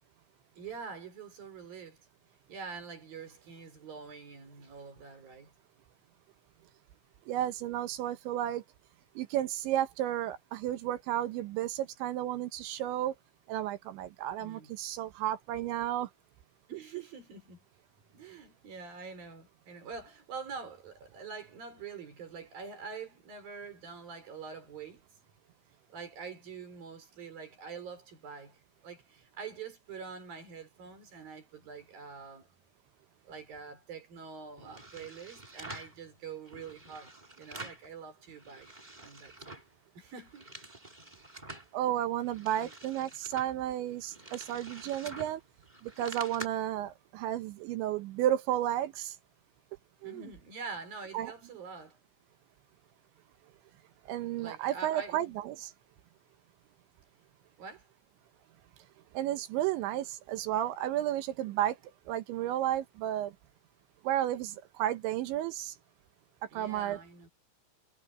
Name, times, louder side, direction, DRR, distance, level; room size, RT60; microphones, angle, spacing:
voice 1, 0.6-2.0 2.5-5.5 14.4-14.8 16.7-17.6 18.1-25.0 25.9-32.5 33.2-38.7 39.0-39.6 40.0-40.5 41.4-41.6 42.6-42.7 50.0-52.0 54.4-55.3 57.6-57.9 66.5-67.3, right 5 dB, 45° right, 6.1 m, -45 dB
voice 2, 7.3-8.6 9.2-13.1 13.5-16.1 41.7-45.4 45.8-49.2 50.0-50.3 51.1-51.3 54.1-55.7 59.1-61.8 62.1-63.3 64.0-65.7 66.5-67.0, right 12 dB, 75° right, 3.1 m, -32 dB
sound 1, 34.6-36.0 36.5-37.9 38.2-39.7 40.1-41.7 42.2-46.5, right 2 dB, 10° right, 2.2 m, -47 dB
omnidirectional pair, 5.8 m